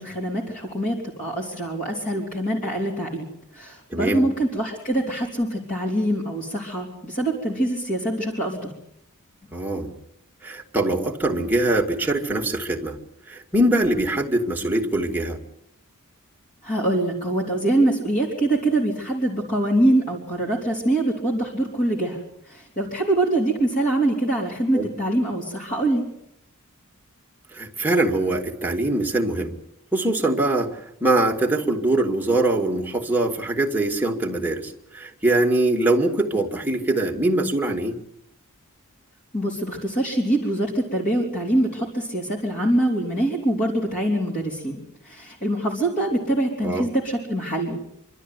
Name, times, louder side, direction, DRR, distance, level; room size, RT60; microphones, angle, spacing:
voice 1, 0.0-3.3 3.5-8.7 16.6-22.2 22.5-26.1 39.3-44.8 45.0-47.8, right 1 dB, 40° left, -3 dB, 4.2 m, -24 dB
voice 2, 3.9-4.3 9.5-9.9 10.4-13.0 13.3-15.4 24.7-24.9 27.5-29.6 29.9-38.0 46.6-46.9, right 2 dB, 10° right, -1 dB, 2.3 m, -23 dB
26.0 x 13.0 x 9.6 m, 0.78 s
head